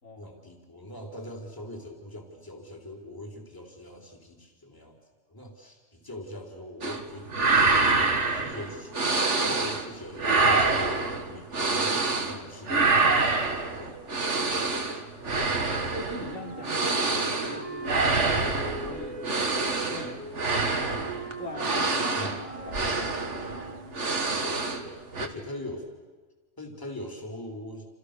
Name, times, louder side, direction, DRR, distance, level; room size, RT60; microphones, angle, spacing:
voice 1, 0.2-5.0 5.3-9.0 9.4-14.4 20.0-20.1 22.2-22.4 24.4-25.9 26.6-27.9, left 1 dB, 15° left, 1 dB, 4.1 m, -42 dB
sound 1, 6.8-7.0 7.3-9.9 10.2-12.4 12.7-24.9 25.1-25.3, right 3 dB, 65° right, 2.4 m, -26 dB
voice 2, 15.2-15.6 15.9-21.1 21.4-23.5, left 2 dB, 80° left, -1 dB, 6.3 m, -41 dB
Wind instrument woodwind instrument, 16.3-24.0, right 3 dB, 25° right, 1.4 m, -41 dB
29.0 x 29.0 x 6.9 m, 1.3 s
omnidirectional pair, 1.3 m